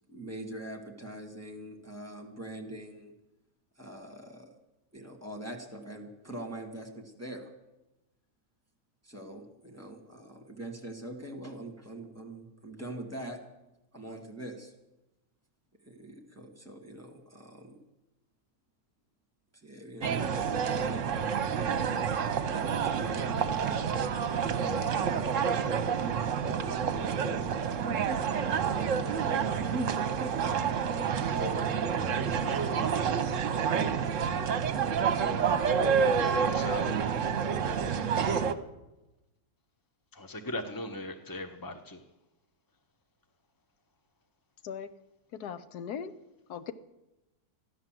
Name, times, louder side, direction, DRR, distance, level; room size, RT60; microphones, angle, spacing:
voice 1, 0.1-3.1 3.8-4.5 4.9-7.5 9.0-13.4 13.9-14.7 15.9-17.8 19.5-21.3 22.6-23.8 24.2-25.4, right 1 dB, 10° right, 3 dB, 2.0 m, -43 dB
sound 1, 20.0-38.5, right 6 dB, 55° right, 1.1 m, -28 dB
voice 2, 36.3-37.2 40.1-42.0, left 1 dB, 25° left, 7 dB, 0.5 m, -39 dB
voice 3, 45.3-46.1 46.5-46.7, left 8 dB, 75° left, 13 dB, 1.3 m, -38 dB
14.5 x 11.0 x 7.5 m, 0.99 s
omnidirectional pair, 1.7 m